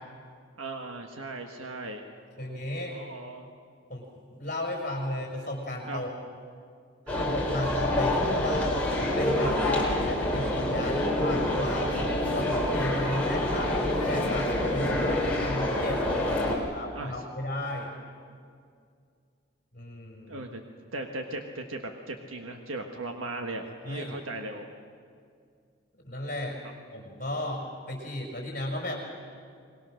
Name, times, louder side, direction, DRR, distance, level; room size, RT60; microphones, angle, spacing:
voice 1, 0.6-2.1 2.4-3.5 5.9-6.0 7.1-7.3 9.4-10.0 16.4-17.2 20.3-20.6 20.9-24.7 26.6-26.7, right 2 dB, 90° right, 4 dB, 1.4 m, -38 dB
voice 2, 2.4-3.0 3.9-6.1 7.1-9.5 10.0-11.9 12.3-16.0 16.3-17.9 19.7-20.5 23.8-24.2 26.0-26.6 26.9-29.0, left 1 dB, 40° left, 0 dB, 5.6 m, -34 dB
sound 1, 7.1-16.6, left 1 dB, 5° left, 3.7 m, -27 dB
25.5 x 21.5 x 6.5 m, 2.2 s
head